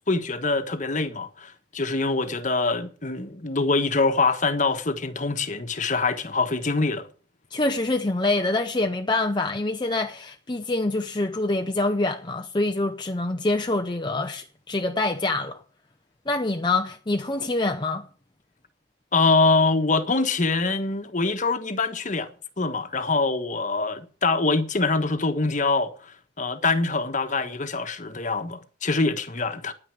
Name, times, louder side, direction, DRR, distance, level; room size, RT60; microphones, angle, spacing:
voice 1, 0.1-7.1 19.1-22.3 22.6-29.7, left 3 dB, 40° left, 1.3 m, -24 dB
voice 2, 7.5-15.6 16.3-18.1, left 2 dB, 25° left, 0.7 m, -25 dB
10.0 x 9.5 x 8.2 m
head